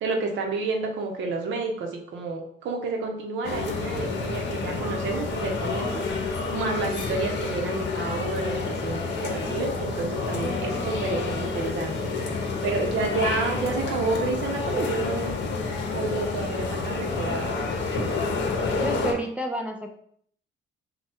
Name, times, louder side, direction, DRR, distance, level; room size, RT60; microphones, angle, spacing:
voice 1, 0.0-15.4 15.9-17.6 18.0-18.1, right 3 dB, 75° right, 2 dB, 0.8 m, -30 dB
sound 1, 3.4-19.1, left 4 dB, 65° left, 0.7 m, -29 dB
voice 2, 17.1-17.5 18.8-19.9, right 1 dB, 5° right, 2 dB, 0.4 m, -31 dB
3.4 x 2.3 x 4.3 m, 0.64 s
cardioid pair, 90°, 20 cm